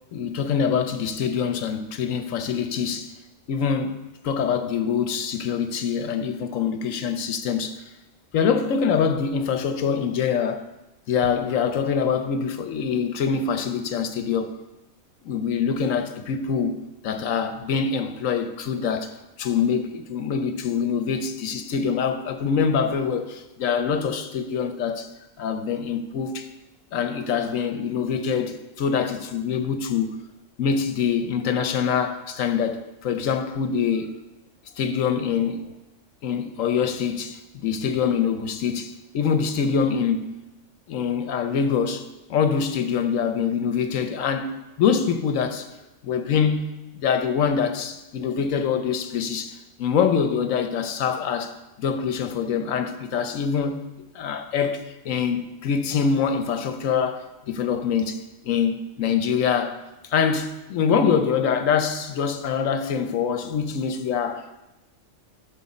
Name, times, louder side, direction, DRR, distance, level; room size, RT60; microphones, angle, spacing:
voice 1, 0.1-3.1 3.5-4.0 4.2-7.8 8.3-10.7 11.1-14.6 15.2-16.8 17.0-25.1 25.4-26.5 26.9-30.2 30.6-34.1 34.8-35.7 36.2-40.3 40.9-42.0 42.3-44.5 44.8-45.7 46.0-46.7 46.9-51.5 51.8-53.8 54.1-59.8 60.1-64.4, left 6 dB, 80° left, 1.1 m, -24 dB
13.0 x 6.3 x 4.2 m
omnidirectional pair, 1.4 m